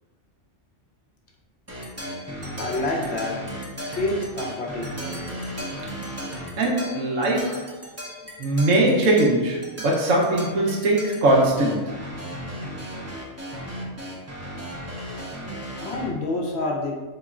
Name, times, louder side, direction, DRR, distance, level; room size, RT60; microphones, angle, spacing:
sound 1, 1.7-16.1, equal, 25° right, 0.3 m, -36 dB
voice 1, 2.6-3.4 4.0-5.0 15.8-17.0, left 2 dB, 65° left, 0.8 m, -27 dB
voice 2, 6.6-7.8 8.4-11.9, right 1 dB, 80° right, 1.1 m, -21 dB
4.0 x 2.9 x 2.3 m
omnidirectional pair, 1.3 m